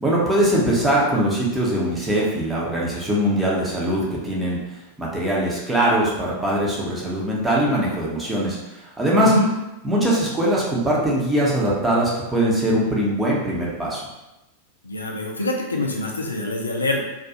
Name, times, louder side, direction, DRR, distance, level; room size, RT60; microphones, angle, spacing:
voice 1, 0.0-4.6 5.0-8.6 9.0-9.3 9.8-14.0, right 1 dB, 10° right, -5 dB, 0.7 m, -21 dB
voice 2, 9.1-9.5 14.8-17.0, left 1 dB, 80° left, 0 dB, 0.4 m, -25 dB
2.4 x 2.3 x 2.8 m, 0.97 s
figure-of-eight pair, 90°, 0 cm